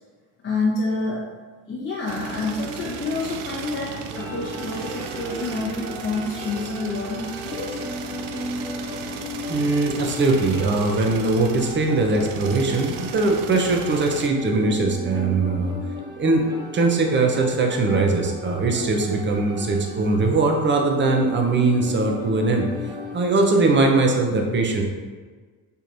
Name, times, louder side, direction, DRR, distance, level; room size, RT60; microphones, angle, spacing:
voice 1, 0.4-1.2 1.7-3.9 4.1-7.8, left 3 dB, 30° left, -7 dB, 0.9 m, -28 dB
sound 1, 2.1-14.3, right 7 dB, 70° right, 0.5 m, -36 dB
sound 2, 4.1-23.1, left 1 dB, 10° right, 1.3 m, -36 dB
voice 2, 9.5-15.7 16.1-16.5 16.7-22.7 23.1-24.8, right 3 dB, 30° right, 2 dB, 0.7 m, -21 dB
4.5 x 3.2 x 2.6 m, 1.5 s
supercardioid pair, 80°, 40 cm